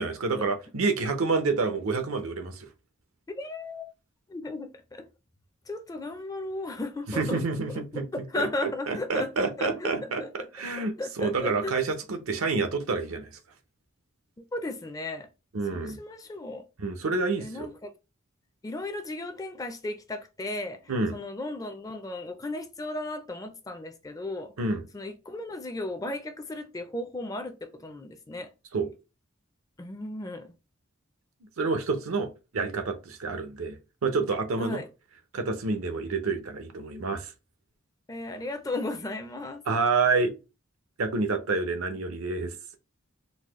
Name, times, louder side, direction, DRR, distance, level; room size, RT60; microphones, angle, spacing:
voice 1, 0.0-2.7 7.2-8.5 8.9-13.4 15.5-16.0 16.8-17.7 20.9-21.2 24.6-24.8 28.7-28.9 31.6-34.8 35.3-37.3 39.7-40.3 41.0-42.5, right 4 dB, 80° right, 0.7 m, -28 dB
voice 2, 3.3-3.9 4.3-5.1 5.7-7.4 7.7-10.5 10.8-11.7 14.5-15.3 15.6-16.6 17.4-17.9 18.6-24.5 24.9-28.5 29.8-30.6 34.6-34.9 38.1-39.6, left 2 dB, 15° left, 0.4 m, -35 dB
4.0 x 2.0 x 3.0 m
head